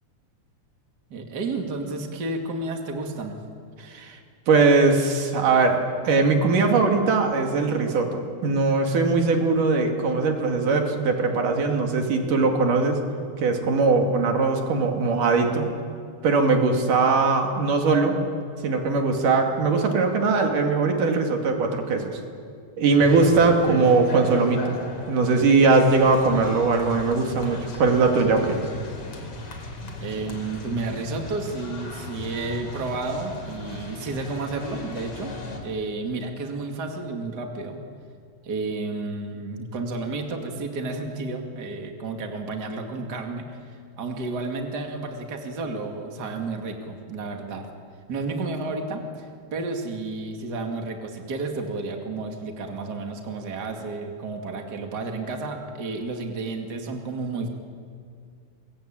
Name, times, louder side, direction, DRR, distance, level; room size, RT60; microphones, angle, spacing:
voice 1, 1.1-3.4 30.0-35.3 35.6-37.8 38.4-47.7 48.1-57.5, right 3 dB, 35° right, 3 dB, 2.6 m, -31 dB
voice 2, 3.8-4.2 4.5-5.8 6.0-13.0 13.4-15.7 16.2-18.2 18.6-22.2 22.8-28.6, right 4 dB, 80° right, 3 dB, 3.9 m, -20 dB
sound 1, 23.0-35.6, left 2 dB, 45° left, 4.0 m, -36 dB
25.0 x 22.0 x 9.0 m, 2.3 s
omnidirectional pair, 3.7 m